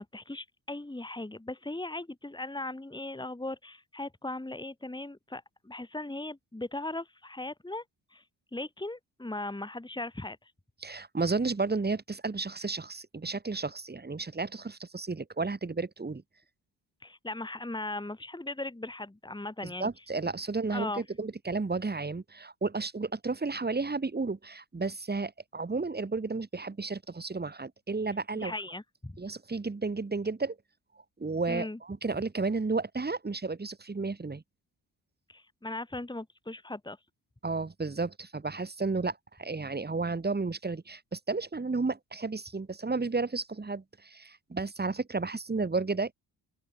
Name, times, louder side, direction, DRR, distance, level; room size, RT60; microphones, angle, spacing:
voice 1, 0.0-7.8 8.1-8.2 8.5-10.5 17.0-19.9 20.7-21.0 28.4-29.2 31.5-31.8 35.3-37.0, left 2 dB, 10° left, 3.1 m, -38 dB
voice 2, 10.8-16.2 19.8-28.5 29.2-30.6 31.2-34.4 37.4-46.1, right 3 dB, 25° right, 2.4 m, -32 dB
open air
supercardioid pair, 60°, 42 cm